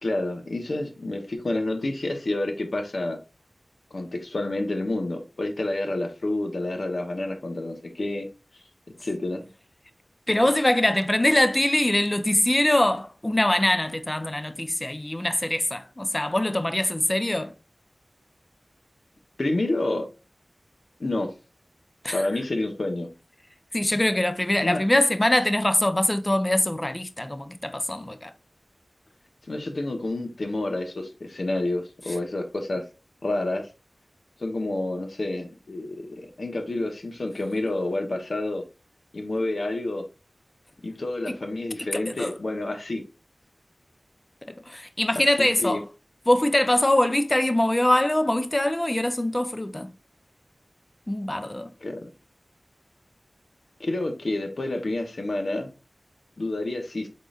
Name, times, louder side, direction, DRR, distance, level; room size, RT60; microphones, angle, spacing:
voice 1, 0.0-3.2 3.9-8.3 8.9-9.5 19.4-20.1 21.0-21.3 22.1-23.1 24.6-24.8 29.4-32.8 33.2-33.7 34.4-38.6 39.1-40.0 40.8-43.0 45.4-45.8 51.8-52.1 53.8-55.7 56.4-57.1, left 2 dB, 75° left, 0.9 m, -29 dB
voice 2, 10.3-17.5 22.0-22.2 23.7-28.3 41.3-41.4 41.8-42.3 44.5-45.8 46.3-49.9 51.1-51.7, left 1 dB, 30° left, 0.5 m, -23 dB
3.8 x 3.7 x 2.4 m
wide cardioid pair, 45°, 0 cm